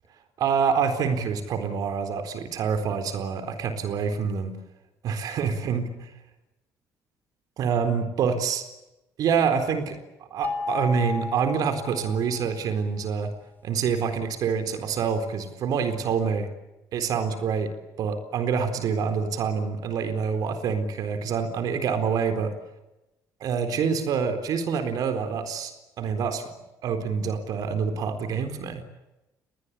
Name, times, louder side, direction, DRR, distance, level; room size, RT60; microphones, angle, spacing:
voice 1, 0.4-4.6 5.0-5.8 7.6-8.6 9.2-10.0 10.3-13.3 13.6-16.5 16.9-17.7 18.0-22.5 23.4-25.7 26.0-26.4 26.8-28.8, right 6 dB, 65° right, 8 dB, 4.1 m, -26 dB
sound 1, 10.4-12.7, left 3 dB, 25° left, 3.8 m, -33 dB
30.0 x 21.0 x 8.6 m, 0.96 s
cardioid pair, 125°, 7 cm